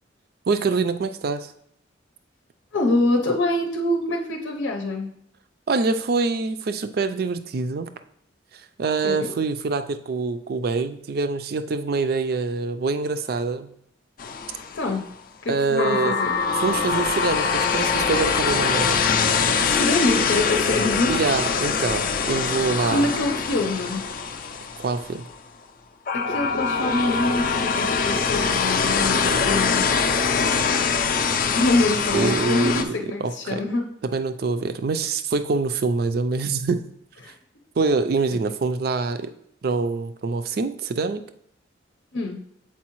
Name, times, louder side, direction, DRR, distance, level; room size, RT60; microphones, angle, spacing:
voice 1, 0.5-1.5 5.7-7.9 8.8-13.7 15.5-16.2 16.5-19.0 21.1-23.1 24.8-25.2 32.1-32.9 33.2-33.6 34.1-36.8 37.8-39.3 39.6-41.2, right 4 dB, 55° right, 10 dB, 0.4 m, -25 dB
voice 2, 2.7-5.1 9.0-9.3 14.7-15.0 15.4-16.3 19.6-21.1 22.8-24.0 26.1-29.9 31.5-33.8 37.2-37.3 42.1-42.4, left 2 dB, 90° left, 2 dB, 0.7 m, -25 dB
sound 1, 14.2-15.0 15.8-25.3 26.1-32.8, left 5 dB, 50° left, 0.4 m, -23 dB
7.2 x 4.6 x 3.0 m, 0.72 s
head